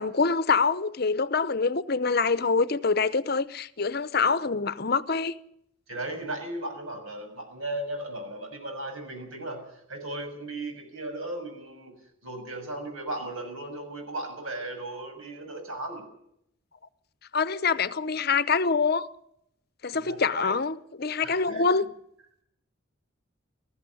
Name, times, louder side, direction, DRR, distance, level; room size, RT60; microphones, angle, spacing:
voice 1, 0.0-5.3 17.3-19.1 19.8-21.8, left 4 dB, 50° left, 0.8 m, -25 dB
voice 2, 5.9-11.9 12.2-16.0 19.9-20.5 21.2-21.8, right 1 dB, 85° right, 6.8 m, -36 dB
20.0 x 14.5 x 9.8 m
head